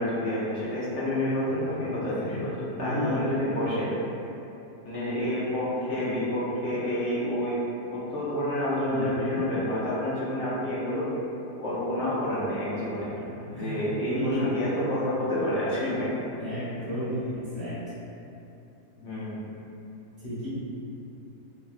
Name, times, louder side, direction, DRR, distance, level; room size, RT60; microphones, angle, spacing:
voice 1, 0.0-3.9 4.8-7.6 7.9-11.1 11.6-13.1 13.5-16.1 19.0-19.4, left 1 dB, 60° left, -8 dB, 0.8 m, -29 dB
voice 2, 2.1-2.4 2.8-3.4 8.9-9.4 13.2-13.3 13.5-14.6 16.4-17.7 20.2-20.5, left 1 dB, 20° left, -11 dB, 0.5 m, -33 dB
3.2 x 2.2 x 2.4 m, 2.8 s
omnidirectional pair, 1.7 m